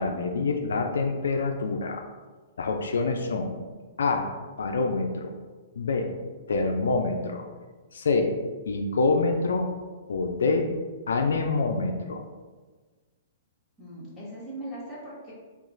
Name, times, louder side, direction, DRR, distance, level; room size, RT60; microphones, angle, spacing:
voice 1, 0.0-2.1 2.6-3.6 4.0-5.3 5.8-6.1 6.5-7.4 7.9-8.3 8.7-9.7 10.1-10.7 11.1-12.2, left 3 dB, 85° left, 4 dB, 0.3 m, -26 dB
voice 2, 13.8-15.3, right 1 dB, 10° left, -9 dB, 1.4 m, -39 dB
2.9 x 2.4 x 3.9 m, 1.4 s
hypercardioid pair, 140°, 0 cm